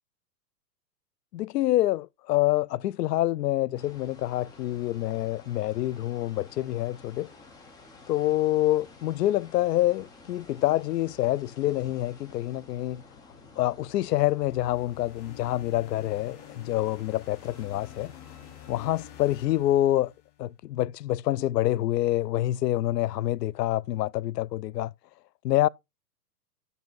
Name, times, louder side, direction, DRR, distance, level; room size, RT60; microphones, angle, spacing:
voice 1, 1.3-7.3 8.1-13.0 13.6-18.1 18.7-20.1 20.4-24.9 25.4-25.7, left 15 dB, 80° left, 0.5 m, -26 dB
sound 1, 3.7-19.6, left 3 dB, 10° left, 0.5 m, -52 dB
sound 2, 14.4-20.6, left 12 dB, 45° left, 1.5 m, -50 dB
10.5 x 5.4 x 3.8 m
hypercardioid pair, 135°, 48 cm